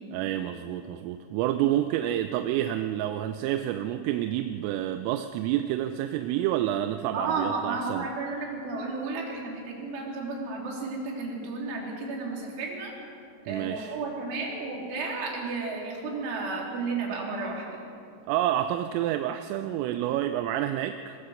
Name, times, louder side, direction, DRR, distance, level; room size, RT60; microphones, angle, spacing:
voice 1, 0.1-8.1 13.5-14.0 18.3-21.2, right 12 dB, 85° right, 8 dB, 3.1 m, -28 dB
voice 2, 7.1-12.9 13.5-17.8, right 3 dB, 65° right, -2 dB, 5.7 m, -33 dB
21.5 x 21.0 x 6.5 m, 2.6 s
omnidirectional pair, 5.9 m